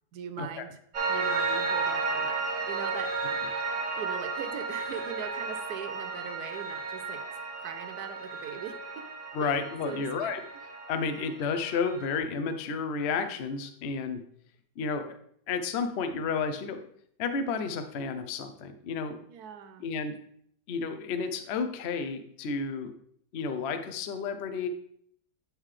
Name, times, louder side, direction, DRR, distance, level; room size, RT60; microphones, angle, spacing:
voice 1, 0.1-0.8 1.1-3.1 4.0-7.2 7.6-9.1 9.4-10.3 19.3-19.8, right 8 dB, 70° right, 9 dB, 1.0 m, -40 dB
Piano, 0.9-12.2, right 4 dB, 45° right, 1.3 m, -33 dB
voice 2, 9.3-10.4 10.9-14.2 14.8-15.2 15.5-16.8 17.2-19.2 19.8-20.1 20.7-22.9 23.3-24.7, left 5 dB, 85° left, 8 dB, 0.5 m, -31 dB
9.3 x 3.8 x 3.2 m, 0.68 s
omnidirectional pair, 1.9 m